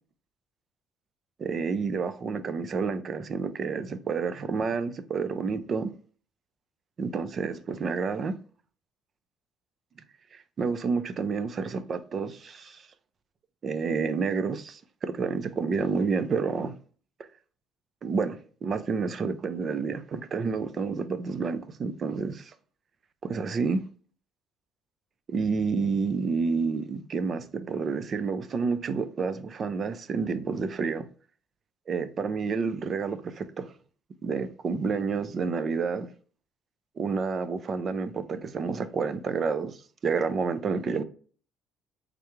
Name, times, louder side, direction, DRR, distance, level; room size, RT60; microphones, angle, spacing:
voice 1, 1.4-5.9 7.0-8.4 10.3-12.8 13.6-16.7 18.0-18.4 18.6-22.5 23.2-23.8 25.3-31.1 31.9-33.7 34.2-36.1 37.0-39.8 40.0-41.0, right 5 dB, 35° right, 0.4 m, -29 dB
3.7 x 3.3 x 3.0 m
cardioid pair, 155°, 0 cm